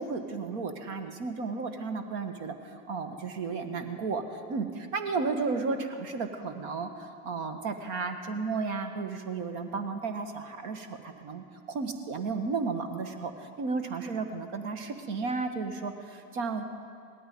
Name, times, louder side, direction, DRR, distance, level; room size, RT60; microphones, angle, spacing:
voice 1, 0.0-4.2 4.5-16.6, right 4 dB, 50° right, 7 dB, 1.6 m, -33 dB
18.0 x 13.0 x 5.4 m, 2.3 s
hypercardioid pair, 100°, 44 cm